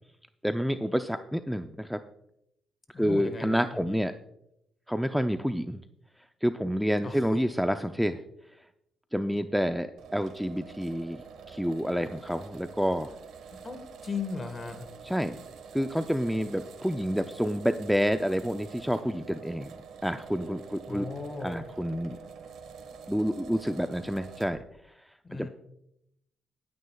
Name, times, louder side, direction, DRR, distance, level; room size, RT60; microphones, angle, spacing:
voice 1, 0.4-2.0 3.0-4.1 4.9-5.8 6.4-8.2 9.1-11.2 11.5-13.1 15.0-15.4 15.7-19.7 20.0-21.1 21.4-22.2 23.1-24.6 25.3-25.5, equal, ahead, 8 dB, 0.5 m, -28 dB
voice 2, 2.9-4.0 7.0-7.2 13.5-13.8 14.0-14.9 20.9-21.6 25.2-25.5, left 4 dB, 35° left, 7 dB, 1.5 m, -37 dB
sound 1, 10.0-24.6, right 6 dB, 75° right, 1.4 m, -47 dB
19.5 x 9.5 x 2.3 m, 0.79 s
cardioid pair, 90°, 0 cm